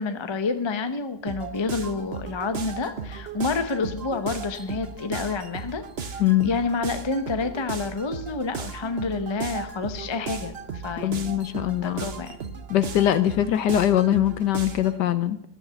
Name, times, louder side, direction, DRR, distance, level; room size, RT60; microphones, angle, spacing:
voice 1, 0.0-10.6 10.8-11.3 11.8-12.4, left 4 dB, 45° left, 8 dB, 0.3 m, -29 dB
sound 1, 1.3-15.0, right 5 dB, 45° right, 0.8 m, -36 dB
voice 2, 6.2-6.5 11.0-12.0 12.7-15.4, left 12 dB, 65° left, 13 dB, 1.2 m, -22 dB
13.5 x 9.8 x 7.1 m, 0.70 s
omnidirectional pair, 2.2 m